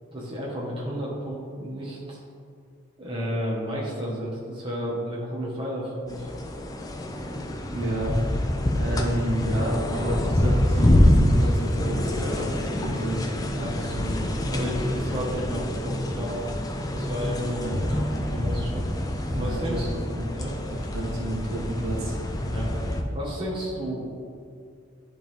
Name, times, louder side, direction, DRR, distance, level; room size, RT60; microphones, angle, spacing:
voice 1, 0.1-2.2 3.0-6.3 13.5-16.4 16.9-19.9 20.4-20.6 22.4-24.3, equal, 25° right, -6 dB, 1.4 m, -32 dB
sound 1, 6.1-23.0, left 1 dB, 15° left, 0.4 m, -26 dB
voice 2, 7.7-8.3 8.7-13.2 17.5-17.8 19.3-20.3 20.7-22.1, equal, 75° right, -4 dB, 1.6 m, -30 dB
10.5 x 3.8 x 3.5 m, 2.3 s
head